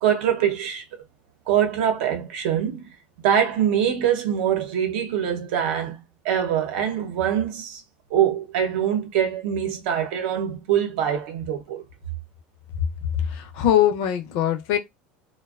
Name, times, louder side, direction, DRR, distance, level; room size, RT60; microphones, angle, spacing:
voice 1, 0.0-0.8 1.5-7.8 8.1-11.8, right 9 dB, 80° right, 0.7 m, -24 dB
voice 2, 13.2-14.8, left 10 dB, 70° left, 0.6 m, -22 dB
2.4 x 2.1 x 2.3 m
supercardioid pair, 150°, 5 cm